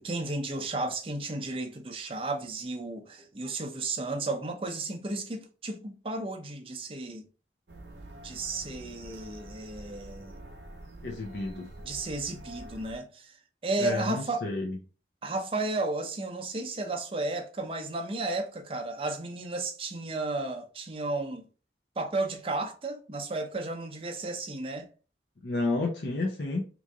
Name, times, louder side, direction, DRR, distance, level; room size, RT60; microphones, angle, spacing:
voice 1, 0.0-7.3 8.2-10.3 11.8-13.3 13.6-14.4 15.2-21.5 22.0-24.9, right 2 dB, 30° right, 0.5 m, -33 dB
sound 1, 7.7-13.0, right 1 dB, 80° right, 0.7 m, -46 dB
voice 2, 11.0-11.7 13.8-14.8 25.4-26.6, left 2 dB, 70° left, 0.7 m, -31 dB
3.0 x 2.6 x 3.5 m
head